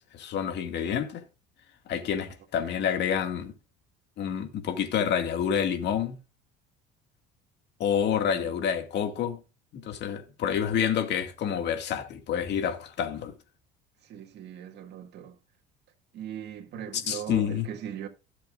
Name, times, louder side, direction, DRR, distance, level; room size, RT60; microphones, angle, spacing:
voice 1, 0.1-1.2 1.9-3.5 4.2-6.2 7.8-9.4 9.7-13.3 17.1-17.6, left 8 dB, 55° left, 2.2 m, -28 dB
voice 2, 2.6-2.9 8.3-8.5 14.0-15.4 16.1-18.1, right 9 dB, 55° right, 2.2 m, -39 dB
16.5 x 7.5 x 2.5 m
supercardioid pair, 95°, 21 cm